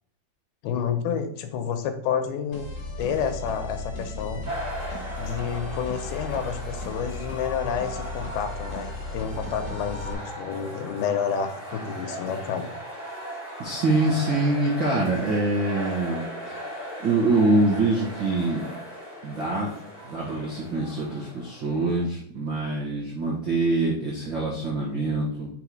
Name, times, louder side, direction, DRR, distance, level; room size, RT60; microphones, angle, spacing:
voice 1, 0.6-2.7 3.0-4.4 5.2-12.7, left 7 dB, 85° left, 7 dB, 2.6 m, -29 dB
sound 1, 2.5-10.1, left 2 dB, 40° left, 1.7 m, -36 dB
sound 2, 4.4-22.1, equal, 5° left, 1.6 m, -38 dB
voice 2, 13.6-16.6 17.0-18.7 19.2-19.7 20.0-25.5, right 2 dB, 90° right, -5 dB, 1.0 m, -24 dB
5.7 x 4.2 x 4.7 m, 0.64 s
omnidirectional pair, 4.4 m